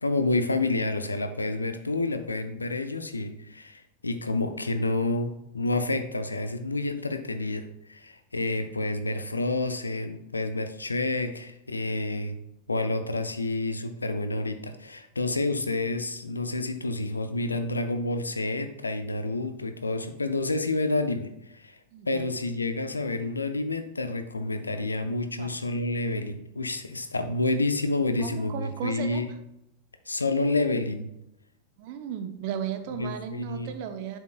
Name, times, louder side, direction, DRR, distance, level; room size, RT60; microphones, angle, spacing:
voice 1, 0.0-12.4 12.7-21.8 22.1-29.3 30.1-31.1 32.9-33.7, left 2 dB, 80° left, 8 dB, 0.6 m, -29 dB
voice 2, 21.9-22.3 25.4-25.5 28.2-29.2 31.8-34.2, right 8 dB, 45° right, 7 dB, 0.7 m, -35 dB
11.0 x 4.6 x 2.2 m, 0.85 s
figure-of-eight pair, 90°, 0 cm